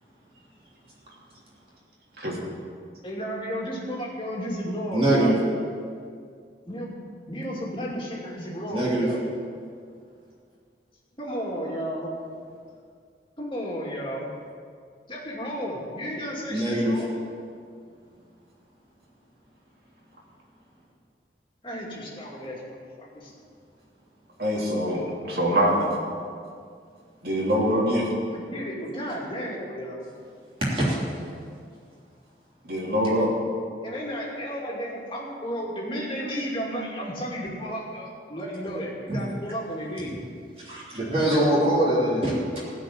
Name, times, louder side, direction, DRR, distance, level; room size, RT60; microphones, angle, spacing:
voice 1, 3.0-5.4 6.7-6.9 7.3-9.2 11.1-12.1 13.4-14.3 15.1-17.1 21.6-23.3 28.3-30.1 33.8-40.1, equal, 30° left, -3 dB, 2.4 m, -33 dB
voice 2, 4.9-5.3 8.7-9.1 16.5-17.0 30.7-30.9 39.1-39.2 40.6-42.6, right 1 dB, 35° right, -7 dB, 3.2 m, -23 dB
voice 3, 24.4-25.9 27.2-28.1 32.6-33.3, equal, 60° right, -4 dB, 3.0 m, -24 dB
16.0 x 5.3 x 9.3 m, 2.2 s
head